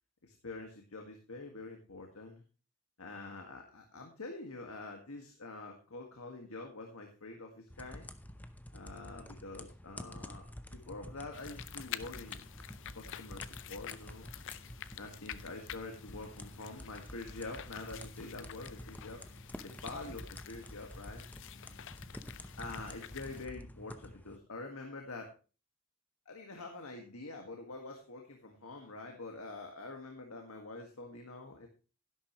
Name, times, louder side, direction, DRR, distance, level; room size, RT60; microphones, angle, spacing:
voice 1, 0.2-2.4 3.0-8.1 8.7-12.4 12.9-14.3 14.9-19.2 19.6-21.2 22.6-25.3 26.2-31.7, left 3 dB, 85° left, 3 dB, 1.8 m, -46 dB
sound 1, 7.7-24.4, left 1 dB, 10° left, 0.7 m, -49 dB
sound 2, 11.3-23.5, left 11 dB, 60° left, 0.5 m, -49 dB
12.0 x 11.0 x 3.1 m, 0.34 s
head